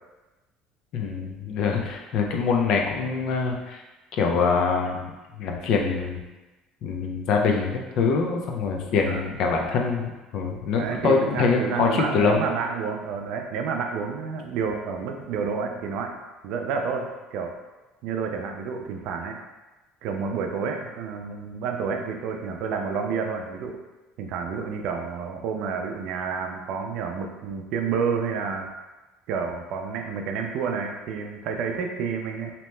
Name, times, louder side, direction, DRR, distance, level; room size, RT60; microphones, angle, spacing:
voice 1, 0.9-3.8 4.2-5.1 5.4-6.2 6.8-12.4, left 5 dB, 60° left, 1 dB, 0.4 m, -24 dB
voice 2, 10.7-16.1 16.4-17.5 18.0-19.4 20.0-23.8 24.2-28.7 29.3-32.5, right 5 dB, 65° right, 3 dB, 0.4 m, -29 dB
2.8 x 2.1 x 3.2 m, 1.1 s
cardioid pair, 130°, 0 cm